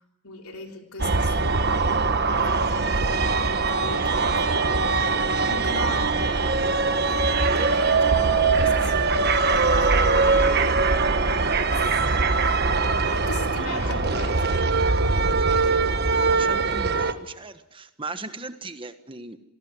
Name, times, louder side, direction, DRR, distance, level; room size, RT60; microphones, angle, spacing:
voice 1, 0.2-3.4 3.7-10.2 11.7-12.0 13.1-14.5, left 3 dB, 85° left, 3 dB, 3.8 m, -40 dB
sound 1, 1.0-17.1, right 4 dB, 45° right, 1.3 m, -22 dB
voice 2, 13.6-14.0 15.6-15.7 16.0-19.4, right 3 dB, 25° right, 9 dB, 1.3 m, -38 dB
27.0 x 18.5 x 9.6 m, 0.90 s
head